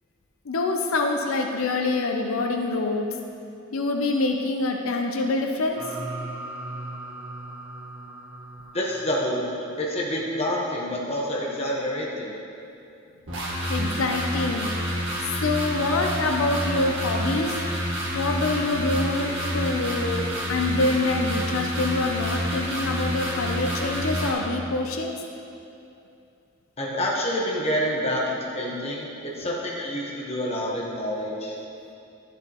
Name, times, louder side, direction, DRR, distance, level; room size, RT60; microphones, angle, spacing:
voice 1, 0.5-3.1 3.7-5.8 13.7-14.7 15.4-17.6 18.1-25.2, left 2 dB, 85° left, 3 dB, 0.6 m, -25 dB
sound 1, 5.8-8.6 13.3-24.3, equal, 65° right, 1.7 m, -29 dB
voice 2, 8.7-12.3 26.8-31.6, equal, 30° left, -3 dB, 1.1 m, -28 dB
11.0 x 6.9 x 3.0 m, 2.7 s
head